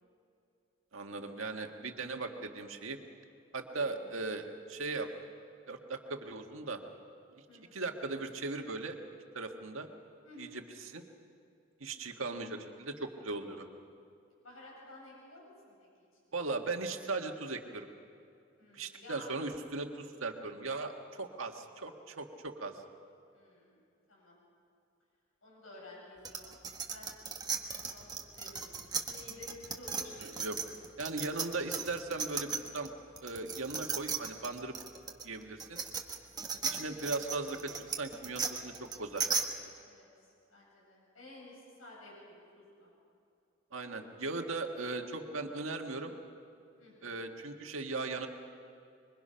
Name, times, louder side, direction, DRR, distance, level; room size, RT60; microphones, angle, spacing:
voice 1, 0.9-3.0 3.5-5.1 5.7-6.8 7.7-9.0 9.3-9.9 10.4-11.0 11.8-13.7 16.3-17.9 18.7-22.7 30.2-30.6 31.0-32.9 33.2-34.7 35.2-35.8 36.7-39.3 43.7-46.1 47.0-48.3, right 3 dB, 85° right, 4 dB, 1.8 m, -38 dB
voice 2, 3.7-4.1 7.5-7.8 10.2-10.8 14.4-16.2 18.6-19.3 23.3-23.8 24.1-24.4 25.4-30.4 36.3-36.8 39.8-40.1 40.5-42.9 46.8-47.2, left 2 dB, 85° left, -3 dB, 7.9 m, -53 dB
sound 1, 26.2-32.9 33.2-39.4, right 5 dB, 20° right, 1.5 m, -36 dB
26.0 x 23.5 x 5.7 m, 2.5 s
head